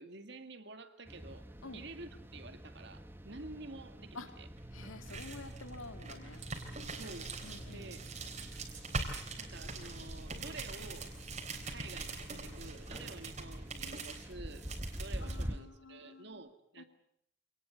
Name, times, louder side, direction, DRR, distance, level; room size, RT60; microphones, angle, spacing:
voice 1, 0.0-4.5 6.9-7.3 7.7-8.1 9.3-11.1 11.7-14.7 14.9-16.8, right 2 dB, 55° right, 8 dB, 2.1 m, -50 dB
sound 1, 1.0-15.6, equal, 10° right, 1.0 m, -47 dB
sound 2, 4.6-15.4, right 3 dB, 35° right, 3.7 m, -43 dB
voice 2, 4.7-6.4 7.4-7.9 15.2-16.5 16.8-16.9, left 3 dB, 80° left, 8 dB, 2.3 m, -49 dB
26.5 x 19.0 x 8.1 m, 0.72 s
head